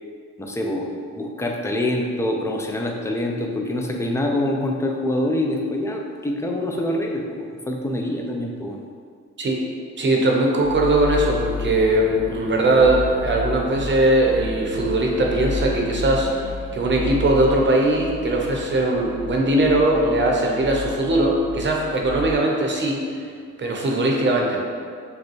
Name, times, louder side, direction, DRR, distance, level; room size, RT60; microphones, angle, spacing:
voice 1, 0.4-8.8, left 1 dB, 10° left, 1 dB, 0.5 m, -25 dB
voice 2, 10.0-23.0 23.6-24.6, right 2 dB, 40° right, 0 dB, 0.8 m, -20 dB
sound 1, 10.6-22.3, left 4 dB, 50° left, 0.7 m, -32 dB
6.6 x 2.3 x 3.1 m, 2.2 s
cardioid pair, 90°, 30 cm